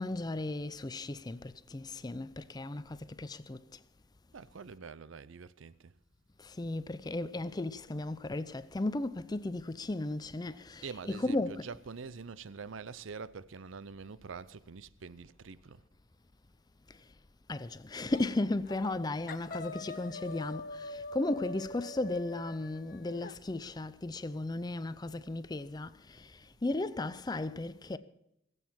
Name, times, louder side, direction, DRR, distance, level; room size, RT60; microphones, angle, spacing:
voice 1, 0.0-3.8 6.4-11.7 16.9-17.1 17.5-28.0, left 2 dB, 20° left, 0.5 m, -35 dB
voice 2, 4.3-5.9 10.8-15.8, right 5 dB, 75° right, 0.6 m, -45 dB
sound 1, 18.1-18.4 18.7-19.0 19.3-23.3, left 2 dB, 45° left, 0.9 m, -44 dB
20.5 x 8.2 x 7.3 m
head